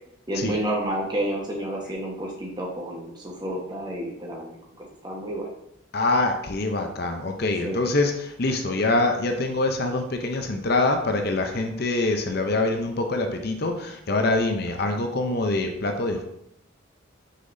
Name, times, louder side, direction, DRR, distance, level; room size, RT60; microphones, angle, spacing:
voice 1, 0.3-5.5 7.6-7.9, right 1 dB, 20° right, -2 dB, 1.2 m, -30 dB
voice 2, 5.9-16.2, left 2 dB, 50° left, 5 dB, 0.6 m, -25 dB
6.3 x 5.7 x 2.7 m, 0.77 s
head